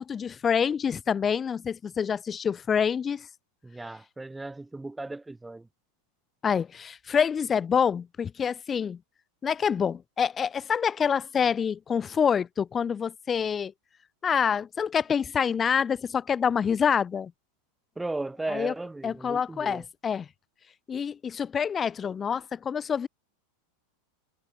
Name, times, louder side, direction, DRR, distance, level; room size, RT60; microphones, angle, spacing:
voice 1, 0.0-3.3 6.4-9.0 9.4-13.7 14.2-17.3 18.5-18.7 19.0-20.3 20.9-23.1, left 7 dB, 25° left, 0.7 m, -27 dB
voice 2, 3.6-5.7 18.0-19.8, right 2 dB, 10° right, 2.9 m, -36 dB
hypercardioid pair, 105°, 0 cm